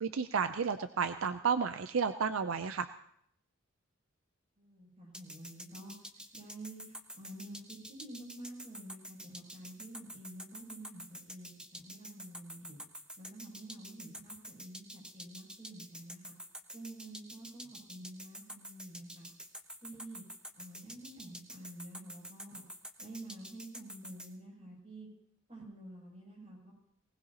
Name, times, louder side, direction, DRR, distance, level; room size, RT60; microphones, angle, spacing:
voice 1, 0.0-2.9, right 6 dB, 75° right, 10 dB, 0.5 m, -32 dB
voice 2, 4.6-5.9 6.3-12.8 13.2-16.4 16.7-19.3 19.8-20.2 20.5-22.6 23.0-25.1 25.5-26.7, right 1 dB, 30° right, -2 dB, 7.5 m, -49 dB
sound 1, 5.1-24.3, equal, 5° right, 1.0 m, -48 dB
19.5 x 19.5 x 2.9 m, 0.72 s
head